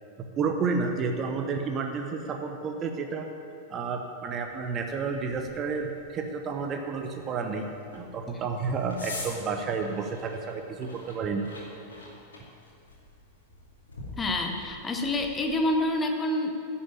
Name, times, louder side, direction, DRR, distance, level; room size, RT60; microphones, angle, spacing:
voice 1, 0.4-3.3 3.7-7.7 7.9-11.5, right 4 dB, 30° right, 4 dB, 0.9 m, -31 dB
sound 1, 4.5-15.4, left 2 dB, 70° left, 2.5 m, -46 dB
voice 2, 14.2-16.5, left 1 dB, 15° left, 3 dB, 1.3 m, -27 dB
10.5 x 7.1 x 8.8 m, 2.5 s
figure-of-eight pair, 90°, 0 cm